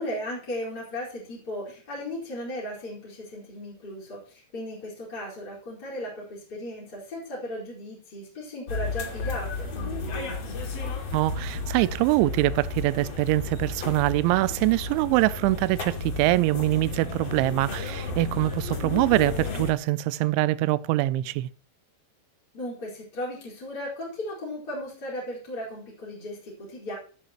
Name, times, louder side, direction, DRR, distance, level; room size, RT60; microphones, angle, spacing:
voice 1, 0.0-10.3 22.5-27.0, left 1 dB, 20° left, 4.9 m, -36 dB
sound 1, 8.7-19.7, left 4 dB, 40° left, 3.1 m, -33 dB
voice 2, 11.1-21.5, right 18 dB, 85° right, 3.0 m, -24 dB
13.5 x 12.5 x 3.1 m
omnidirectional pair, 5.3 m